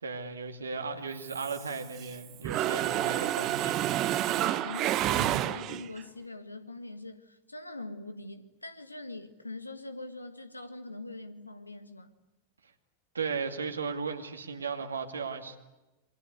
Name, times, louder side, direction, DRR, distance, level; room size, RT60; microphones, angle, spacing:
voice 1, 0.0-3.8 13.1-15.6, right 5 dB, 75° right, 2.4 m, -36 dB
Mechanisms, 1.2-2.1 2.4-6.0, right 13 dB, 35° right, 1.2 m, -29 dB
voice 2, 4.3-12.1, left 2 dB, 85° left, 1.8 m, -43 dB
27.5 x 24.0 x 8.2 m
figure-of-eight pair, 90°, 0 cm